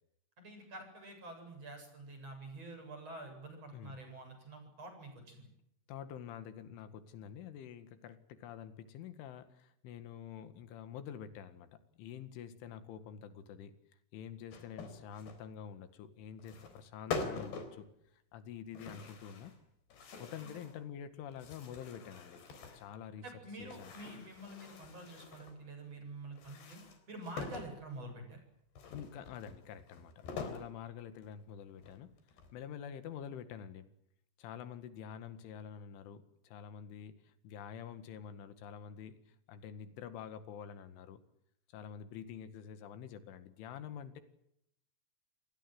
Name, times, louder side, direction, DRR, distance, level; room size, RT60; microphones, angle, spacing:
voice 1, 0.4-5.5 20.4-20.5 23.2-26.8 27.1-28.4, right 2 dB, 30° right, 5 dB, 8.9 m, -48 dB
voice 2, 5.9-13.8 14.1-17.9 18.3-19.5 20.2-22.4 22.7-23.2 23.6-23.9 28.9-32.1 32.5-33.9 34.4-41.2 41.7-44.2, left 8 dB, 85° left, 11 dB, 4.3 m, -47 dB
sound 1, 14.5-15.4 16.4-16.8 17.1-17.8 18.7-19.6 19.9-20.8 21.3-22.9 23.6-25.6 26.3-27.8 28.8-30.7 31.2-31.3 31.8-32.6, left 4 dB, 60° left, 5.8 m, -45 dB
29.0 x 21.0 x 7.8 m, 0.78 s
omnidirectional pair, 5.4 m